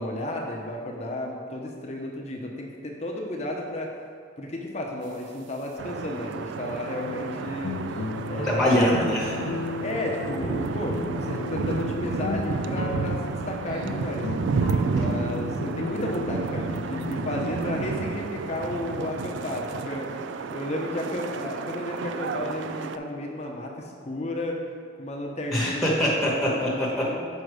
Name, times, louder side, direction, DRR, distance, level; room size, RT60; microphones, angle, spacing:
voice 1, 0.0-3.9 4.4-7.8 8.3-8.8 9.8-14.3 14.9-24.6 25.0-25.9 26.3-26.8 27.0-27.3, left 1 dB, 35° left, 0 dB, 0.7 m, -33 dB
sound 1, 5.8-23.0, right 4 dB, 70° right, 0.3 m, -31 dB
sound 2, 7.0-17.5, left 4 dB, 75° left, 0.4 m, -35 dB
voice 2, 8.4-9.4 25.5-27.0, equal, ahead, -6 dB, 1.1 m, -23 dB
6.5 x 5.1 x 4.8 m, 2.2 s
head